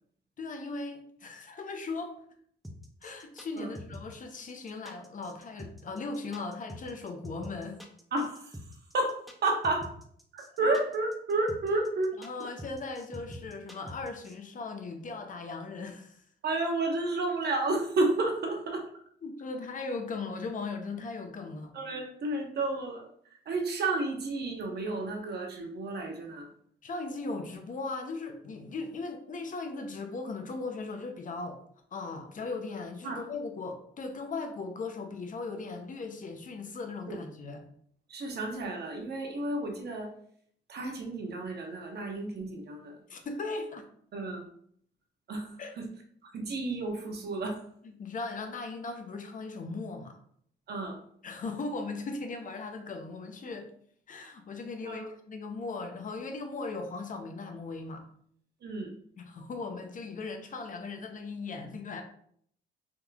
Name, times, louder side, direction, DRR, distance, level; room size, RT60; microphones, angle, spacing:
voice 1, 0.4-2.1 3.0-7.8 12.2-16.2 19.2-21.7 26.8-31.6 31.9-37.7 43.1-43.9 45.6-45.7 47.8-50.2 51.2-53.7 54.1-58.0 59.2-62.0, left 3 dB, 40° left, 5 dB, 0.6 m, -38 dB
sound 1, 2.6-14.3, equal, ahead, 0.5 m, -45 dB
voice 2, 8.1-8.6 8.9-9.9 10.3-12.5 16.4-18.9 21.7-23.1 23.5-26.5 33.0-33.2 37.0-37.2 38.1-40.1 40.7-43.0 44.1-44.5 45.3-45.5 45.8-45.9 46.2-47.6 50.7-51.0 54.8-55.1 58.6-58.9, right 2 dB, 55° right, 2 dB, 0.8 m, -31 dB
3.6 x 2.9 x 2.3 m, 0.63 s
cardioid pair, 90°, 20 cm